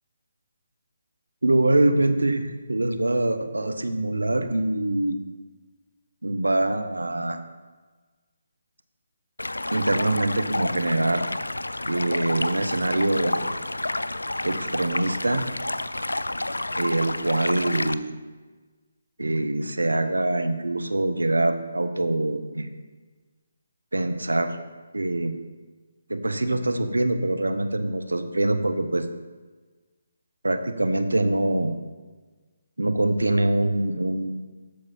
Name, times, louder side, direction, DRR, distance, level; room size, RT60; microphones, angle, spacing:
voice 1, 1.4-5.2 6.2-7.4 9.7-11.3 11.9-13.5 14.4-15.4 16.8-18.2 19.2-22.7 23.9-24.6 24.9-25.3 26.1-29.1 30.4-31.8 32.8-34.4, right 2 dB, 80° right, 8 dB, 0.9 m, -24 dB
Stream, 9.4-17.9, left 2 dB, 85° left, 0.4 m, -30 dB
13.0 x 4.8 x 4.3 m, 1.4 s
figure-of-eight pair, 145°, 0 cm